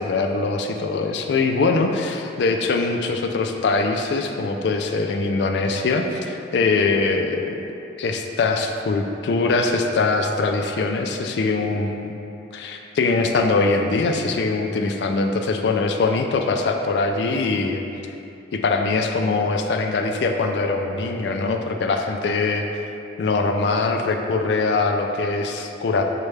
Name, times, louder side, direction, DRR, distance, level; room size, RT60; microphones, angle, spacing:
voice 1, 0.0-7.6 8.0-12.1 12.5-17.8 18.5-22.7 23.2-26.0, left 3 dB, 65° left, 4 dB, 0.3 m, -22 dB
6.3 x 2.2 x 3.2 m, 2.8 s
head